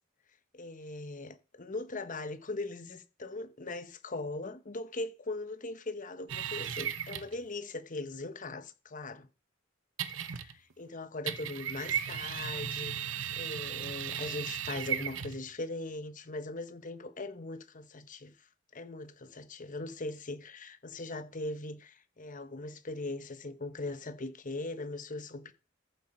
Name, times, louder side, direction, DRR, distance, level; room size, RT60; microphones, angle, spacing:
voice 1, 0.5-9.3 10.8-18.5 18.7-25.5, left 2 dB, 40° left, 1.1 m, -40 dB
sound 1, 6.3-7.4 10.0-10.7 11.3-15.5, right 9 dB, 75° right, 0.9 m, -36 dB
14.0 x 7.9 x 4.4 m
head